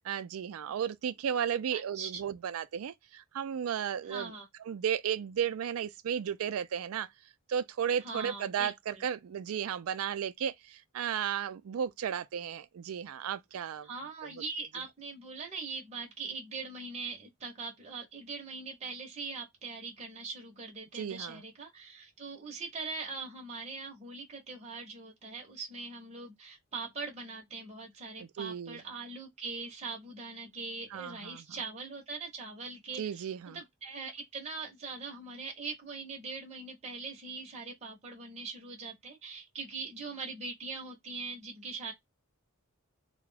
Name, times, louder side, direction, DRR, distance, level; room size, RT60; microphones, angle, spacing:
voice 1, 0.1-4.3 4.7-7.1 7.5-13.9 20.9-21.4 28.2-28.8 30.9-31.4 33.0-33.6, right 8 dB, 80° right, 0.4 m, -34 dB
voice 2, 1.7-2.2 4.0-4.5 8.0-9.0 13.5-41.9, right 4 dB, 30° right, 0.7 m, -41 dB
2.3 x 2.1 x 3.2 m
head